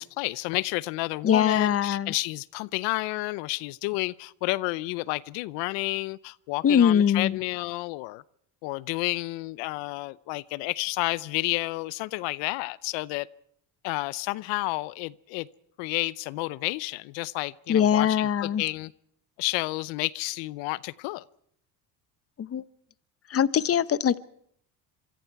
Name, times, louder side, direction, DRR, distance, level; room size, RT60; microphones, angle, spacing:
voice 1, 0.0-8.2 8.6-13.3 13.8-15.5 15.8-18.9 19.4-21.2, left 22 dB, 80° left, 0.8 m, -31 dB
voice 2, 1.2-2.1 6.6-7.4 17.7-18.6 22.4-22.6 23.3-24.2, left 9 dB, 35° left, 0.9 m, -22 dB
26.5 x 24.5 x 4.7 m
supercardioid pair, 95°, 43 cm